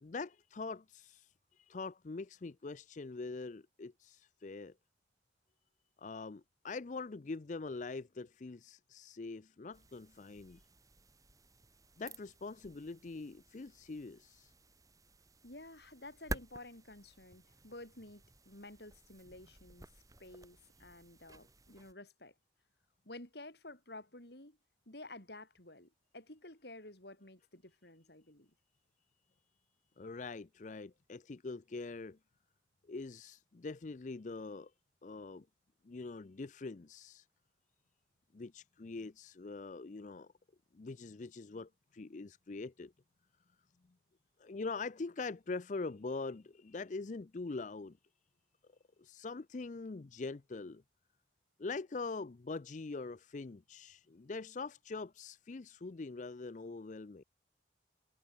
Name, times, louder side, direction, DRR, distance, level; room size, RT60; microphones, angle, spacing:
voice 1, 0.0-4.7 6.0-10.6 12.0-14.5 30.0-32.2 32.9-34.7 35.0-35.5 35.8-37.3 38.3-40.3 40.7-42.9 44.4-48.0 49.0-50.8 51.6-57.2, left 3 dB, 40° left, 0.5 m, -43 dB
sound 1, 9.7-21.9, right 2 dB, 20° right, 3.5 m, -51 dB
voice 2, 15.4-19.9 20.2-22.3 23.0-24.6 24.9-28.5, left 2 dB, 60° left, 4.8 m, -52 dB
head